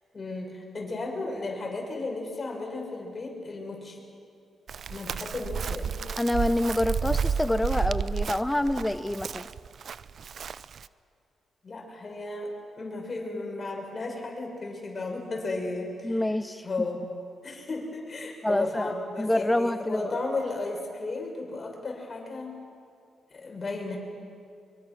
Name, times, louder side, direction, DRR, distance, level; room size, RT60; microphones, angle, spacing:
voice 1, 0.1-4.0 4.9-6.0 11.6-16.2 16.6-17.0 17.4-22.6 23.3-24.0, left 3 dB, 45° left, 1 dB, 6.1 m, -34 dB
Chirp tweet, 4.7-10.9, right 6 dB, 60° right, 0.5 m, -31 dB
voice 2, 6.2-9.5 16.0-16.7 18.4-20.1, left 1 dB, 10° left, 12 dB, 0.7 m, -27 dB
24.0 x 23.5 x 6.2 m, 2.4 s
supercardioid pair, 55°, 0 cm